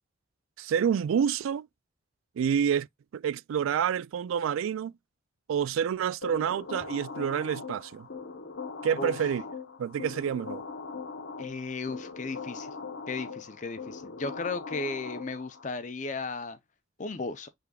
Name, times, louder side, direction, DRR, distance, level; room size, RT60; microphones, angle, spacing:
voice 1, 0.6-1.7 2.4-2.9 3.1-4.9 5.5-8.1 8.8-9.4 9.8-10.6, right 8 dB, 85° right, 0.3 m, -28 dB
sound 1, 6.2-15.7, left 4 dB, 70° left, 1.0 m, -41 dB
voice 2, 11.4-12.7 13.1-16.6 17.0-17.5, left 3 dB, 35° left, 0.6 m, -35 dB
6.6 x 3.5 x 2.3 m
head